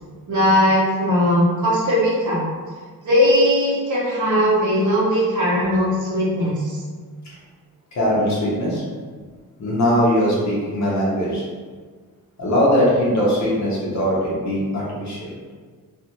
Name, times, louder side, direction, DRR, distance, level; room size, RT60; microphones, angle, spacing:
voice 1, 0.3-2.4 3.0-6.8, equal, 55° right, -7 dB, 0.9 m, -19 dB
voice 2, 7.9-8.8 9.6-11.4 12.4-15.3, equal, 50° left, -6 dB, 0.9 m, -20 dB
2.5 x 2.4 x 2.9 m, 1.5 s
wide cardioid pair, 160°, 37 cm